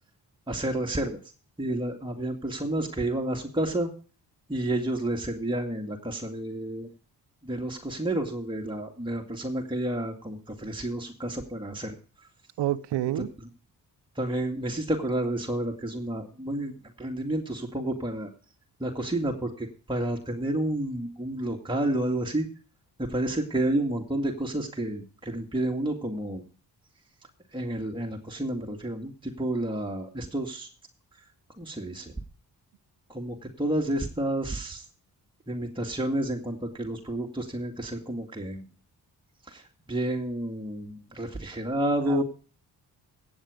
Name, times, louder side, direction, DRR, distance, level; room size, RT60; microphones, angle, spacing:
voice 1, 0.5-1.2 1.6-3.9 4.5-6.9 7.4-12.3 14.2-18.3 18.8-22.5 23.0-26.4 27.5-30.7 31.6-32.1 33.1-34.9 35.5-38.7 39.4-42.2, right 1 dB, 10° right, 2.3 m, -30 dB
voice 2, 12.6-13.3 42.1-42.2, right 13 dB, 85° right, 0.8 m, -28 dB
15.0 x 8.6 x 5.1 m
cardioid pair, 55°, 41 cm